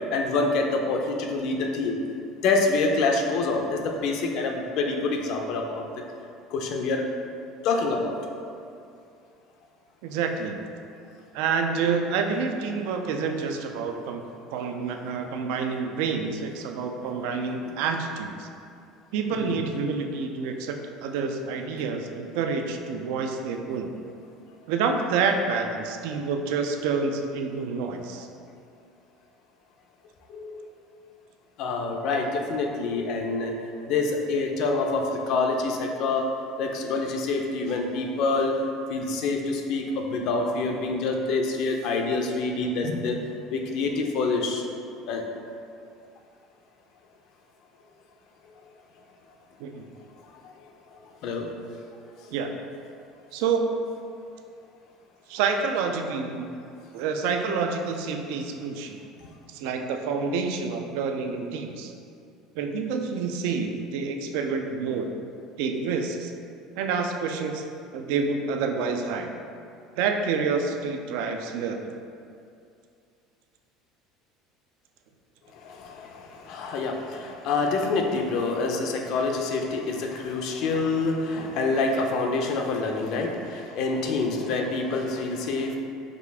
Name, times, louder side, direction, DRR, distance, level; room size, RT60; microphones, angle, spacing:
voice 1, 0.1-2.0 2.4-5.8 6.5-7.1 7.6-8.1 19.4-19.6 30.3-30.7 31.6-36.3 36.6-38.6 38.9-43.2 43.5-44.6 45.1-45.2 51.2-51.5 75.6-85.8, left 3 dB, 60° left, 2 dB, 0.5 m, -26 dB
voice 2, 10.0-10.6 11.3-14.2 14.5-18.5 19.1-20.8 21.0-23.9 24.7-28.3 49.6-49.9 52.3-52.5 53.3-53.8 55.3-56.5 56.9-59.0 59.5-61.9 62.6-65.1 65.6-66.3 66.8-67.7 67.9-69.3 70.0-71.8, right 5 dB, 80° right, 4 dB, 0.3 m, -28 dB
5.0 x 2.4 x 3.4 m, 2.4 s
cardioid pair, 130°, 0 cm